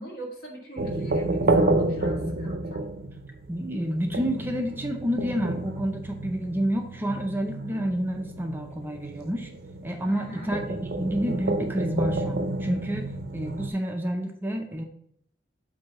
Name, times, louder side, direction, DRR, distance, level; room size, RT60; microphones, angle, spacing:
voice 1, 0.0-2.8 10.0-10.5, right 1 dB, 55° left, -2 dB, 2.0 m, -39 dB
sound 1, 0.8-13.7, right 2 dB, 60° right, 0.6 m, -30 dB
voice 2, 3.5-9.5 9.8-13.1 13.3-14.8, equal, 10° right, 3 dB, 0.5 m, -29 dB
7.7 x 2.7 x 5.6 m, 0.68 s
head